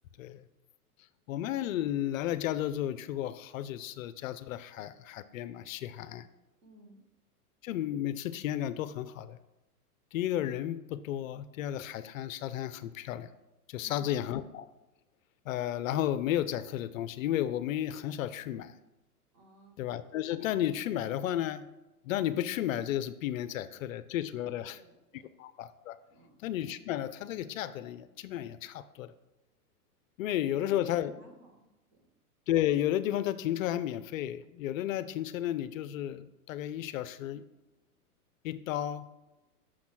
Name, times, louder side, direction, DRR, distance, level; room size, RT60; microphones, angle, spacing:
voice 1, 1.3-6.3 7.6-9.4 10.1-13.3 13.7-14.7 15.5-18.7 19.8-21.7 22.0-24.8 25.1-26.0 26.4-29.1 30.2-31.1 32.5-37.4 38.4-39.1, left 12 dB, 60° left, 13 dB, 0.5 m, -33 dB
voice 2, 6.6-7.0 13.8-14.1 19.3-19.8 24.3-25.3 26.1-26.4 30.5-32.1, right 3 dB, 40° right, 4 dB, 1.7 m, -55 dB
6.4 x 4.2 x 6.0 m, 0.99 s
hypercardioid pair, 115°, 46 cm